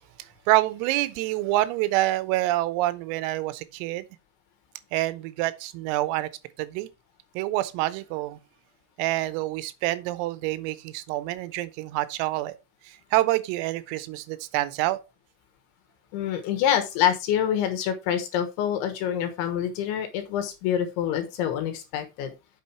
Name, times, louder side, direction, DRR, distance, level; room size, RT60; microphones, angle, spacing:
voice 1, 0.5-4.0 4.9-6.3 6.6-6.9 7.4-8.4 9.0-12.5 12.9-15.0, right 17 dB, 85° right, 3.4 m, -27 dB
voice 2, 16.1-22.3, left 10 dB, 70° left, 3.3 m, -26 dB
8.5 x 6.2 x 4.4 m
omnidirectional pair, 5.9 m